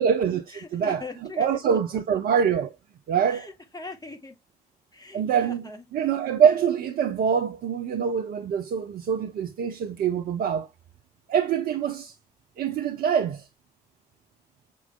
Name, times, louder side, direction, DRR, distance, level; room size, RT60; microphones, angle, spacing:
voice 1, 0.0-1.0 1.4-2.7 3.1-3.5 5.1-5.6 5.9-10.7 11.3-12.1 12.6-13.4, right 7 dB, 50° right, 0.5 m, -24 dB
voice 2, 0.5-1.6 3.3-4.3 4.9-5.8, left 3 dB, 20° left, 1.7 m, -40 dB
6.0 x 3.7 x 2.2 m
figure-of-eight pair, 40°, 19 cm